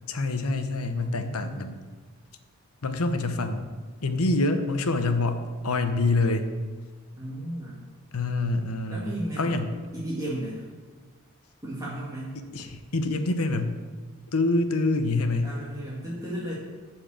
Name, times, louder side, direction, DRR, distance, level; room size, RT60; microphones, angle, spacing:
voice 1, 0.1-1.8 2.8-3.7 4.0-6.5 8.1-9.1 9.4-9.7 12.3-13.7 14.3-15.6, left 2 dB, 80° left, 8 dB, 0.9 m, -26 dB
voice 2, 0.9-1.6 7.1-7.8 8.9-9.6 9.9-10.7 11.6-12.4 15.4-16.5, right 1 dB, 15° right, -7 dB, 1.8 m, -34 dB
11.5 x 4.7 x 7.6 m, 1.5 s
head